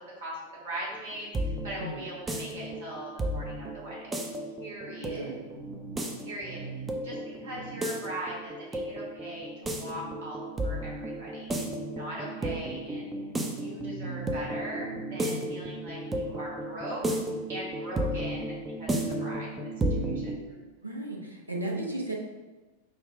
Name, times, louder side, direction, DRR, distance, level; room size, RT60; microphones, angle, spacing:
voice 1, 0.6-4.1 4.6-5.3 6.2-13.1 13.4-17.0 17.5-20.6, right 1 dB, 60° right, -4 dB, 1.5 m, -40 dB
sound 1, 0.9-20.4, right 1 dB, 15° right, 0.4 m, -33 dB
voice 2, 5.0-5.4 15.2-15.5 20.8-22.1, right 1 dB, 80° right, -1 dB, 0.6 m, -35 dB
4.9 x 2.1 x 3.7 m, 1.2 s
figure-of-eight pair, 90°, 0 cm